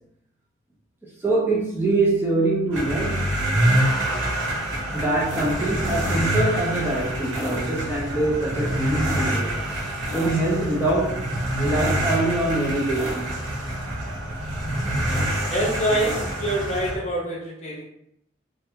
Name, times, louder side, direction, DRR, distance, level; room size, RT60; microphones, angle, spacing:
voice 1, 1.2-3.4 4.9-9.6 10.1-11.3 11.6-13.3, right 2 dB, 10° right, -5 dB, 0.3 m, -24 dB
sound 1, 2.7-17.0, right 1 dB, 80° right, 0.7 m, -26 dB
voice 2, 15.5-17.8, right 1 dB, 35° left, -3 dB, 0.6 m, -25 dB
2.3 x 2.2 x 2.7 m, 0.76 s
head